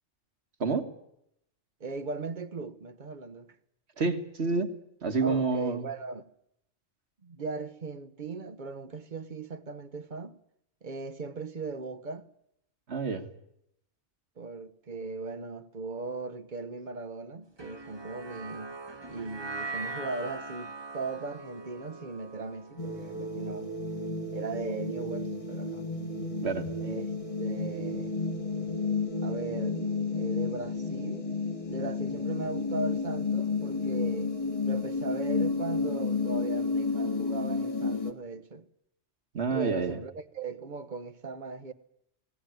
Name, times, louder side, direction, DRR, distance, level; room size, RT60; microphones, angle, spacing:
voice 1, 1.8-3.6 5.2-6.3 7.2-10.4 10.8-12.3 14.4-18.8 19.1-23.7 24.3-25.9 26.8-27.1 27.4-28.2 29.2-29.8 30.1-31.3 31.7-34.3 34.7-38.6 39.5-41.7, right 4 dB, 45° right, 1.2 m, -38 dB
voice 2, 4.0-4.7 5.0-5.9 12.9-13.3 26.4-26.7 39.3-40.0, right 4 dB, 65° right, 2.0 m, -28 dB
sound 1, 17.6-24.0, right 3 dB, 25° right, 1.4 m, -41 dB
sound 2, 22.8-38.1, left 4 dB, 30° left, 2.0 m, -31 dB
20.5 x 18.5 x 9.3 m
omnidirectional pair, 1.2 m